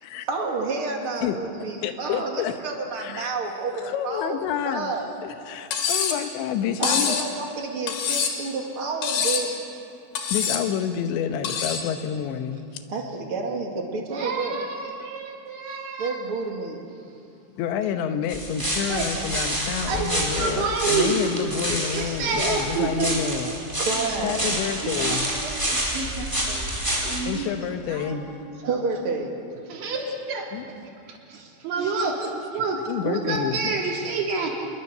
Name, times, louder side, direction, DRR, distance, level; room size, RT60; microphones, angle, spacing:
voice 1, 0.3-4.4 4.6-5.1 6.8-9.5 12.9-16.8 19.5-19.7 20.4-20.7 20.9-21.0 23.8-24.9 25.8-26.5 27.6-27.7 28.7-29.4 30.3-30.9 31.3-32.3 33.9-34.1, right 3 dB, 40° right, 1 dB, 2.2 m, -30 dB
voice 2, 1.8-2.6 3.0-3.3 3.8-5.0 5.2-7.2 10.3-12.8 17.6-23.5 24.2-25.4 27.3-28.3 30.5-30.6 32.9-33.8, left 8 dB, 85° left, 8 dB, 3.4 m, -29 dB
Cutlery silverware, 5.7-6.2 6.8-7.3 7.9-8.5 9.0-9.5 10.2-10.7 11.4-11.9, left 6 dB, 65° left, 3.7 m, -25 dB
sound 1, 18.3-27.2, right 1 dB, 5° right, 4.1 m, -28 dB
voice 3, 19.9-21.2 21.9-23.5 24.8-26.7 27.0-27.5 27.9-28.2 29.7-30.0 31.6-32.2 32.5-32.8 33.0-34.5, right 4 dB, 85° right, -1 dB, 5.6 m, -27 dB
27.0 x 21.5 x 6.8 m, 2.5 s
omnidirectional pair, 5.1 m